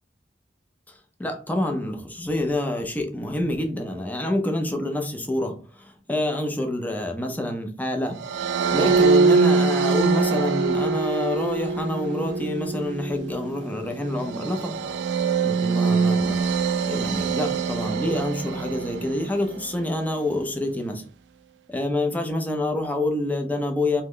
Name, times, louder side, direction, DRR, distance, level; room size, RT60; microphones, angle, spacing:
voice 1, 0.9-8.2 8.7-14.8 15.4-16.4 16.8-21.0 21.7-24.0, left 1 dB, 10° left, 3 dB, 0.5 m, -27 dB
sound 1, 8.2-19.5, right 4 dB, 80° right, 0.3 m, -23 dB
3.0 x 2.2 x 3.6 m, 0.40 s
head